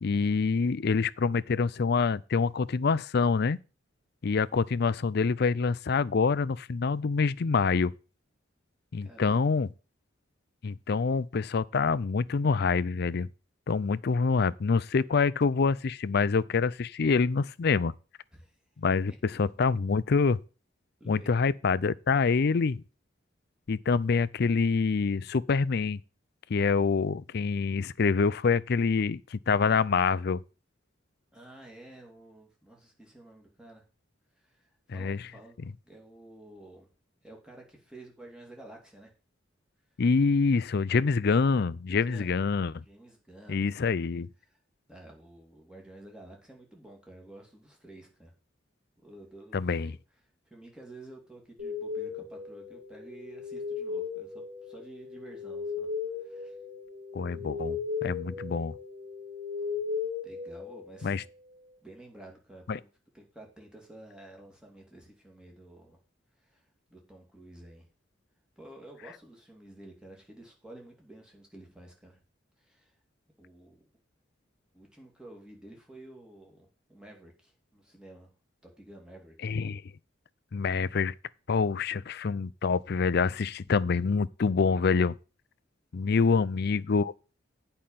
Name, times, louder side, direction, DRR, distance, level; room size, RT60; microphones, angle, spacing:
voice 1, 0.0-3.6 4.2-7.9 8.9-9.7 10.6-13.3 13.7-17.9 18.8-20.4 21.1-22.8 23.7-26.0 26.5-30.4 34.9-35.2 35.6-35.7 40.0-42.8 43.5-44.3 49.5-50.0 57.1-58.7 61.0-61.2 62.7-62.8 79.4-79.8 80.5-81.1 81.5-85.2 85.9-87.1, left 4 dB, 55° left, 0.5 m, -26 dB
voice 2, 9.0-9.6 18.3-18.6 21.0-21.4 31.3-33.8 34.4-35.6 35.8-36.9 37.2-39.1 41.9-42.3 42.8-44.1 44.5-44.6 44.9-48.3 49.0-50.0 50.5-55.9 56.2-56.6 57.5-57.7 60.2-61.2 61.8-62.9 63.1-66.0 66.4-67.9 68.6-72.2 72.6-73.0 73.4-73.9 74.7-78.3 78.6-79.6 86.1-86.5, right 1 dB, 5° right, 2.8 m, -51 dB
sound 1, 51.6-61.3, left 5 dB, 65° right, 3.1 m, -37 dB
8.7 x 5.6 x 7.5 m
head